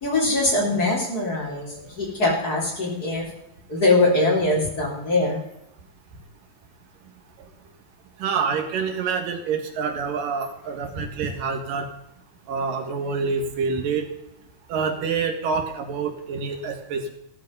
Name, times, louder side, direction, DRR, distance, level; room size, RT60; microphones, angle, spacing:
voice 1, 0.0-3.2 3.7-5.4, left 2 dB, 25° left, -2 dB, 4.0 m, -22 dB
voice 2, 8.2-11.9 12.5-14.1 14.7-17.1, right 5 dB, 85° right, 5 dB, 3.4 m, -27 dB
16.0 x 12.5 x 5.5 m, 0.79 s
omnidirectional pair, 3.8 m